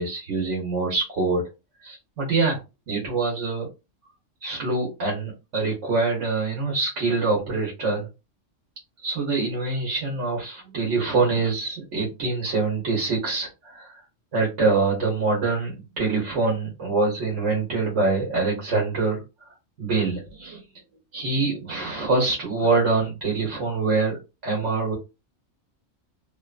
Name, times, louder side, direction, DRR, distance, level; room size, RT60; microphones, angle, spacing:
voice 1, 0.0-1.4 1.8-2.6 2.9-3.7 4.4-8.1 9.0-13.9 14.3-19.2 19.8-20.6 21.1-24.2 24.4-24.9, right 3 dB, 70° right, 0 dB, 1.3 m, -25 dB
2.9 x 2.2 x 2.3 m, 0.26 s
omnidirectional pair, 1.3 m